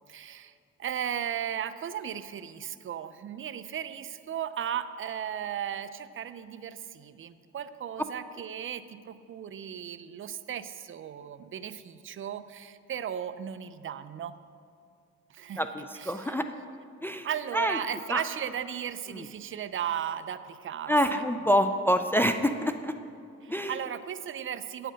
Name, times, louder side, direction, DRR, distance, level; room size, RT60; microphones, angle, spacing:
voice 1, 0.1-14.3 15.3-15.6 16.0-16.3 17.2-20.9 23.4-24.9, right 9 dB, 45° right, 12 dB, 0.5 m, -36 dB
voice 2, 15.6-16.5 17.0-17.3 17.5-17.8 18.1-18.2 19.1-19.3 20.9-22.9 23.5-23.8, equal, 5° left, 7 dB, 0.4 m, -26 dB
8.7 x 7.8 x 6.3 m, 2.4 s
cardioid pair, 90°, 30 cm